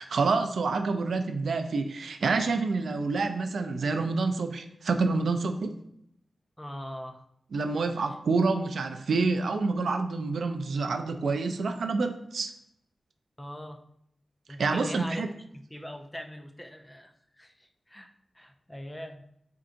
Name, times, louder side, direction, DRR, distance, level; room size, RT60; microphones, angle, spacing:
voice 1, 0.0-5.7 7.5-12.5 14.6-15.3, right 4 dB, 85° right, 7 dB, 0.4 m, -27 dB
voice 2, 6.6-7.2 13.4-13.8 14.5-17.1 17.4-19.2, equal, 10° left, 6 dB, 0.3 m, -41 dB
4.5 x 3.7 x 2.5 m, 0.73 s
wide cardioid pair, 150°, 0 cm